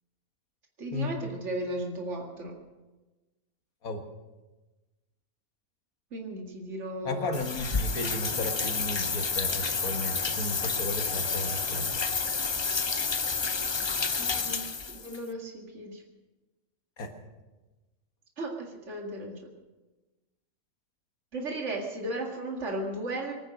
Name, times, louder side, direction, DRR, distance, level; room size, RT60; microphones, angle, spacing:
voice 1, 0.8-2.6 6.1-7.3 14.2-14.7 14.9-16.0 18.4-19.5 21.3-23.3, right 1 dB, 55° right, 1 dB, 2.4 m, -35 dB
voice 2, 7.1-12.0 17.0-17.1, left 2 dB, 85° left, 5 dB, 2.1 m, -34 dB
sound 1, 7.3-15.2, left 5 dB, 45° left, 0.3 m, -30 dB
23.0 x 9.9 x 6.2 m, 1.2 s
omnidirectional pair, 1.5 m